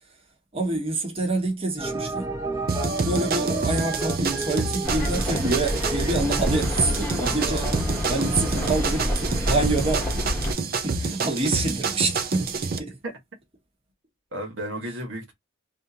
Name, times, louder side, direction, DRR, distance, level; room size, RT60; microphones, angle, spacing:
voice 1, 0.5-2.4 3.0-7.7 8.1-10.1 10.8-13.0, right 3 dB, 30° right, 1.1 m, -27 dB
sound 1, 1.8-9.6, right 2 dB, 15° right, 0.8 m, -33 dB
sound 2, 2.7-12.8, right 4 dB, 50° right, 0.6 m, -28 dB
sound 3, 4.8-10.5, equal, 10° left, 1.0 m, -28 dB
voice 2, 7.5-8.8 13.0-13.1 14.3-15.3, right 1 dB, 75° right, 1.3 m, -35 dB
3.5 x 2.6 x 2.7 m
head